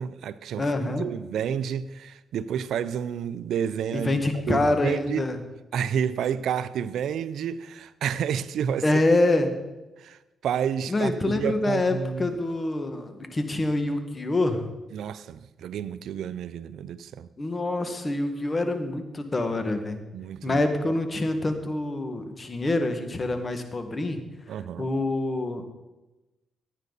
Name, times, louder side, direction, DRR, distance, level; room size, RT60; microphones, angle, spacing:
voice 1, 0.0-5.3 5.7-8.8 10.0-12.4 14.9-17.3 20.1-20.6 24.5-24.9, right 8 dB, 80° right, 0.5 m, -30 dB
voice 2, 0.6-1.1 3.9-5.4 8.8-9.5 10.9-14.6 17.4-20.0 20.4-24.2 24.8-25.6, left 2 dB, 30° left, 1.8 m, -26 dB
16.0 x 9.3 x 4.1 m
cardioid pair, 70°, 0 cm